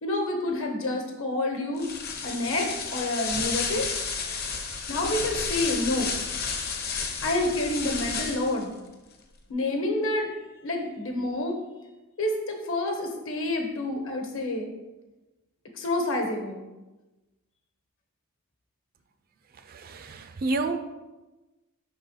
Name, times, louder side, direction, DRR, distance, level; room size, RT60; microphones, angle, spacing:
voice 1, 0.0-1.9 2.2-3.9 4.9-6.1 7.2-8.7 9.5-10.3 10.6-11.6 12.2-14.7 15.8-16.6, left 2 dB, 60° left, 3 dB, 1.1 m, -28 dB
sound 1, 1.8-8.6, left 5 dB, 45° left, 0.8 m, -32 dB
voice 2, 19.7-20.8, right 3 dB, 40° right, 8 dB, 0.4 m, -29 dB
5.7 x 3.8 x 5.6 m, 1.1 s
head